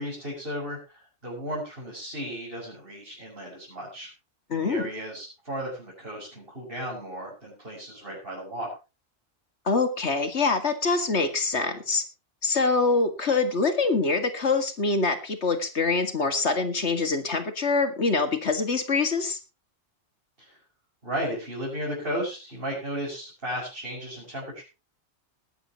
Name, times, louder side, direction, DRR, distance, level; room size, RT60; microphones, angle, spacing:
voice 1, 0.0-4.1 4.5-8.7 20.4-20.6 21.0-24.6, equal, 55° right, -5 dB, 6.6 m, -35 dB
voice 2, 4.5-4.9 9.7-12.0 12.4-19.4, left 3 dB, 70° left, 8 dB, 2.3 m, -25 dB
20.5 x 11.5 x 3.0 m, 0.30 s
omnidirectional pair, 1.2 m